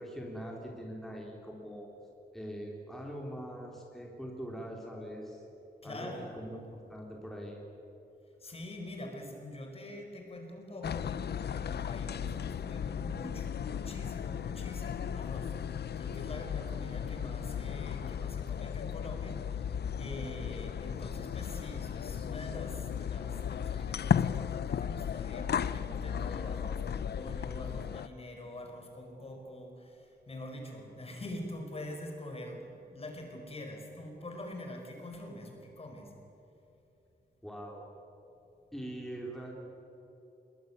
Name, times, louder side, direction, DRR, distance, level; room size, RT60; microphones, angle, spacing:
voice 1, 0.0-1.9 2.3-5.4 5.8-7.6 37.4-37.8 38.7-39.6, equal, ahead, -2 dB, 3.6 m, -42 dB
voice 2, 5.8-6.4 8.4-36.1, left 1 dB, 35° left, 3 dB, 5.0 m, -44 dB
sound 1, 10.8-28.1, left 8 dB, 70° left, 0.6 m, -35 dB
27.0 x 22.0 x 9.6 m, 3.0 s
wide cardioid pair, 175°, 17 cm